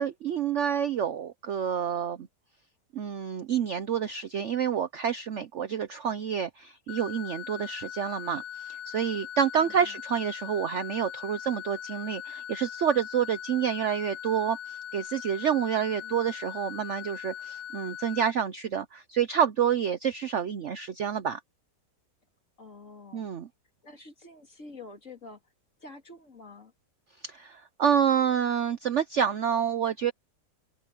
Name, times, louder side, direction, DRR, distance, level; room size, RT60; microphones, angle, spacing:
voice 1, 0.0-2.3 2.9-21.4 23.1-23.5 27.2-30.1, right 8 dB, 60° right, 0.8 m, -28 dB
sound 1, 6.9-18.3, left 9 dB, 70° left, 1.1 m, -40 dB
voice 2, 9.6-10.0 15.8-16.2 22.6-23.3 23.8-25.4 25.8-26.7, left 3 dB, 45° left, 3.4 m, -48 dB
open air
omnidirectional pair, 1.9 m